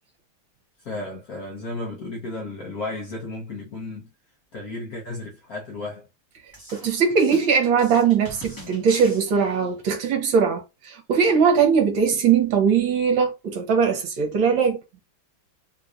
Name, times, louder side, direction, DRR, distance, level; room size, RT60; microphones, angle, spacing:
voice 1, 0.8-4.1 4.5-6.1, left 2 dB, 55° left, 1.0 m, -33 dB
sound 1, 6.5-9.9, equal, 25° left, 0.4 m, -43 dB
voice 2, 6.7-14.8, right 6 dB, 70° right, 1.5 m, -20 dB
3.8 x 3.0 x 2.4 m
omnidirectional pair, 2.4 m